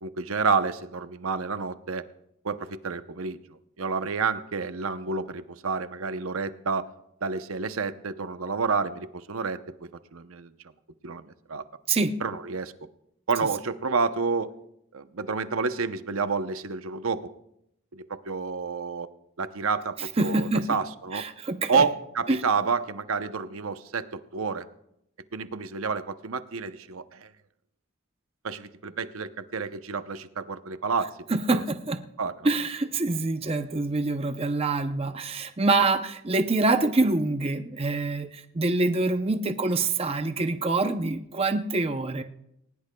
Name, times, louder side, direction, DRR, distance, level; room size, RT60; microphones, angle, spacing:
voice 1, 0.0-2.0 2.4-3.4 3.8-6.9 7.2-10.5 11.0-11.6 12.2-12.7 13.3-14.5 14.9-17.3 17.9-19.1 19.4-21.2 21.7-24.7 25.3-27.3 28.4-31.1 31.5-31.6 32.2-32.3, right 5 dB, 80° right, 11 dB, 0.8 m, -29 dB
voice 2, 20.0-20.8 21.1-21.9 22.3-22.4 31.3-32.0 32.4-42.2, right 3 dB, 30° right, 8 dB, 0.6 m, -26 dB
20.0 x 19.0 x 2.3 m, 0.79 s
head